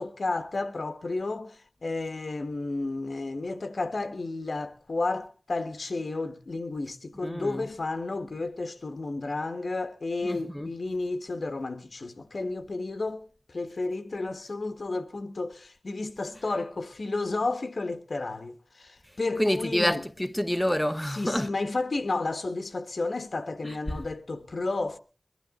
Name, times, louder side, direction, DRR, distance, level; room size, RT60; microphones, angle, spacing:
voice 1, 0.0-20.0 21.1-25.0, left 3 dB, 85° left, 1.5 m, -32 dB
voice 2, 7.2-7.7 10.2-10.7 19.4-21.5 23.6-23.8, equal, 15° left, 1.0 m, -28 dB
23.0 x 12.0 x 3.8 m
wide cardioid pair, 55°, 0 cm